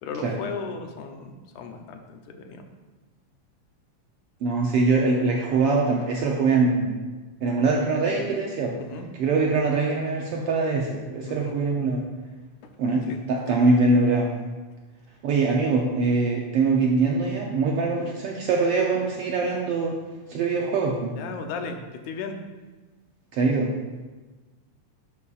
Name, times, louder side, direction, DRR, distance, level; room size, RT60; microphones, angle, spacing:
voice 1, 0.0-2.7 8.8-9.1 11.2-11.6 13.1-13.2 13.5-13.6 21.2-22.4, left 5 dB, 80° left, 5 dB, 2.1 m, -36 dB
voice 2, 4.4-7.0 7.4-8.8 9.2-12.0 12.8-14.3 15.2-19.9 20.3-21.1 23.3-23.7, right 3 dB, 75° right, -1 dB, 1.4 m, -23 dB
11.0 x 6.9 x 2.4 m, 1.2 s
omnidirectional pair, 3.3 m